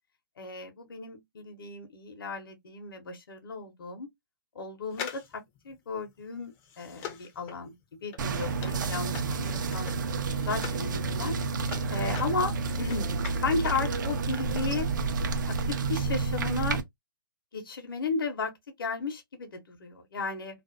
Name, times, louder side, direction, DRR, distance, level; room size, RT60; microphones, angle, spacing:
voice 1, 0.4-4.1 4.5-9.9 10.4-11.4 11.6-13.1 13.4-14.9 15.5-16.8 17.5-20.6, left 4 dB, 75° left, 0.8 m, -34 dB
sound 1, 4.9-10.9 11.2-13.9 14.2-14.3, left 7 dB, 25° left, 0.5 m, -43 dB
sound 2, 8.2-16.8, right 4 dB, 60° right, 0.5 m, -30 dB
2.5 x 2.1 x 2.4 m
hypercardioid pair, 150°, 12 cm